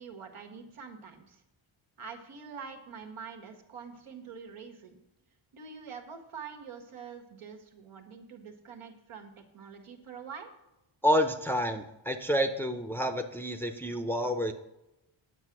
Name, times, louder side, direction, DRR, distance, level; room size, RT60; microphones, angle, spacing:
voice 1, 0.0-1.4 2.0-5.0 5.5-10.5, right 6 dB, 80° right, 3 dB, 1.7 m, -45 dB
voice 2, 11.0-14.5, equal, 5° left, 5 dB, 0.6 m, -29 dB
9.5 x 7.4 x 6.0 m, 0.92 s
wide cardioid pair, 120°, 50 cm